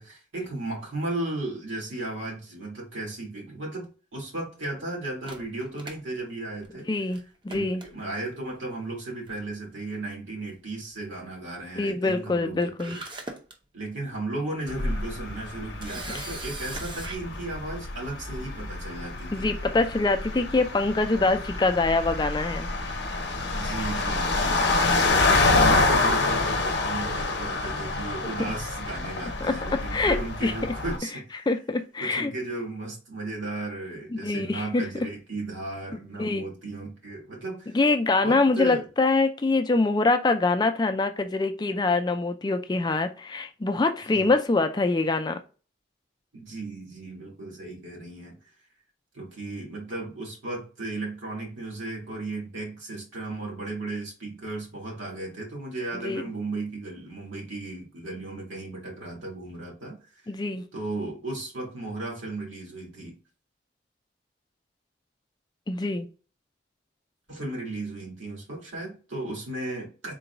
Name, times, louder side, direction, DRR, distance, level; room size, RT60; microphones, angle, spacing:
voice 1, 0.0-6.9 7.5-13.0 13.7-19.5 23.5-31.5 32.0-37.8 38.2-38.8 44.1-44.3 46.3-48.4 49.1-60.3 60.7-63.2 67.3-70.1, right 2 dB, 85° right, -2 dB, 1.8 m, -35 dB
Camera, 5.2-6.8 7.1-7.2 7.5-8.3 9.3-9.5 9.8-9.9 12.4-12.5 12.8-13.5 14.1-14.2 15.8-17.2, right 2 dB, 25° right, 0.6 m, -39 dB
voice 2, 6.9-7.2 7.4-7.8 11.8-13.0 16.1-16.3 19.3-22.7 24.7-25.0 29.4-29.5 29.9-30.2 30.4-30.7 31.5-32.3 34.1-34.9 36.2-36.4 37.7-45.4 56.0-56.2 60.3-60.6 65.7-66.1, left 3 dB, 20° left, 7 dB, 0.3 m, -24 dB
sound 1, 14.7-31.0, left 3 dB, 60° left, 0.7 m, -27 dB
3.9 x 2.2 x 3.9 m, 0.35 s
head